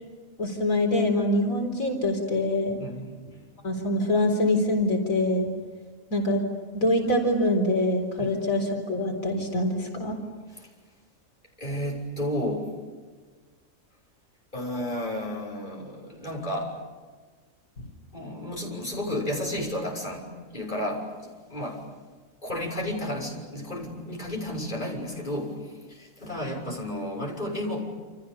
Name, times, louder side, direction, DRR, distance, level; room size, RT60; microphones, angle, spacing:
voice 1, 0.4-2.8 3.6-5.5 6.1-6.4 6.7-10.2 17.8-17.9, left 1 dB, 80° left, 2 dB, 4.4 m, -24 dB
voice 2, 2.8-3.4 8.2-8.4 10.5-10.7 11.6-12.7 14.5-16.8 18.1-20.3 20.5-21.9 22.4-28.1, left 1 dB, 35° left, -1 dB, 6.5 m, -32 dB
29.5 x 28.0 x 7.0 m, 1.5 s
omnidirectional pair, 1.4 m